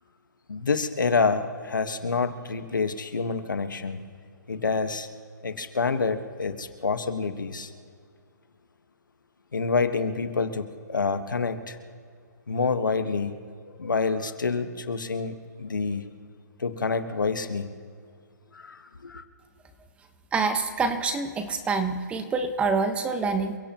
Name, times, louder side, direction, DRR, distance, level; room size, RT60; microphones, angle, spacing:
voice 1, 0.5-4.0 4.5-5.1 5.4-7.7 9.5-11.8 12.5-13.4 13.8-16.0 16.6-17.7 18.5-19.2, left 4 dB, 90° left, 8 dB, 1.5 m, -27 dB
voice 2, 20.3-23.6, right 4 dB, 10° right, 8 dB, 1.2 m, -26 dB
28.5 x 16.5 x 3.1 m, 2.2 s
hypercardioid pair, 140°, 10 cm